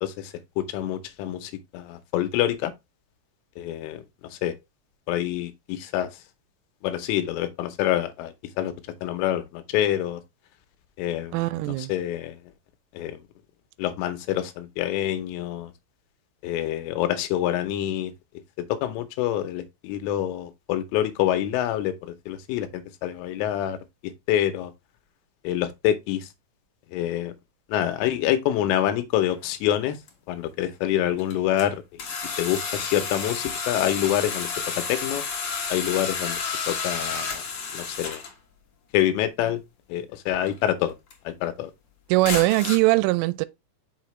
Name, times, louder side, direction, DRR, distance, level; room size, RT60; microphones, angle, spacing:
voice 1, 0.0-2.7 3.6-4.0 4.4-4.6 5.1-6.1 6.8-8.7 9.0-10.2 11.0-11.4 11.9-12.4 12.9-13.2 13.8-15.7 16.4-18.1 18.7-23.8 24.3-24.7 25.4-26.3 26.9-27.3 27.7-30.0 30.3-32.0 32.4-35.2 35.7-36.4 36.7-37.4 37.7-38.2 38.9-39.6 39.9-41.0 41.3-41.7, left 12 dB, 80° left, 3.3 m, -26 dB
voice 2, 11.3-11.9 42.1-43.5, right 20 dB, 85° right, 3.1 m, -21 dB
sound 1, 29.3-29.4 30.1-30.2 31.2-31.7 32.0-38.3 40.5-40.6 41.1-41.2 42.2-42.8, left 5 dB, 60° left, 1.8 m, -31 dB
6.5 x 6.0 x 3.1 m
omnidirectional pair, 5.7 m